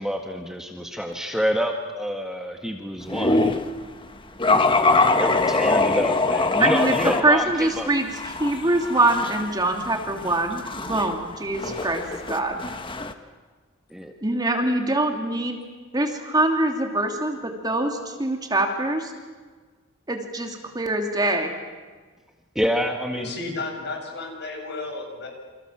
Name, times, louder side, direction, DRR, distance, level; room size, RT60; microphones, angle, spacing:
voice 1, 0.0-3.4 5.2-7.9 13.9-14.1 22.6-23.3, equal, 5° right, 3 dB, 1.8 m, -27 dB
sound 1, 3.1-3.7 4.4-7.2 7.6-13.1, left 3 dB, 25° left, 1.5 m, -23 dB
voice 2, 6.6-6.9 7.2-8.1 8.4-12.6 14.2-15.6 15.9-19.1 20.1-21.5, right 2 dB, 20° right, 3 dB, 2.9 m, -24 dB
voice 3, 23.1-25.3, left 3 dB, 55° left, 2 dB, 7.9 m, -33 dB
29.0 x 27.0 x 7.5 m, 1.4 s
head